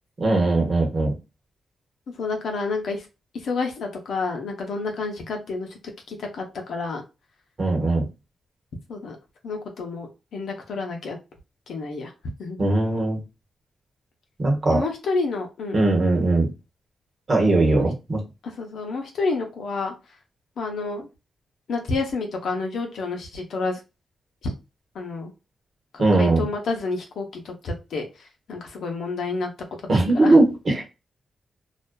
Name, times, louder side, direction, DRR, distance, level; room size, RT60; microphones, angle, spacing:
voice 1, 0.2-1.1 7.6-8.1 12.6-13.2 14.4-14.8 15.7-16.5 17.3-18.2 26.0-26.4 29.9-30.8, right 2 dB, 45° right, 0 dB, 1.0 m, -19 dB
voice 2, 2.2-3.1 3.3-5.8 6.1-7.0 8.9-9.2 9.4-11.2 11.7-12.1 12.4-12.6 14.7-15.8 17.7-17.8 18.4-19.9 20.6-21.1 21.7-23.8 24.4-24.5 24.9-25.3 26.1-29.5 30.1-30.4, left 3 dB, 80° left, 2 dB, 0.7 m, -29 dB
2.4 x 2.2 x 2.2 m, 0.27 s
cardioid pair, 80°, 0 cm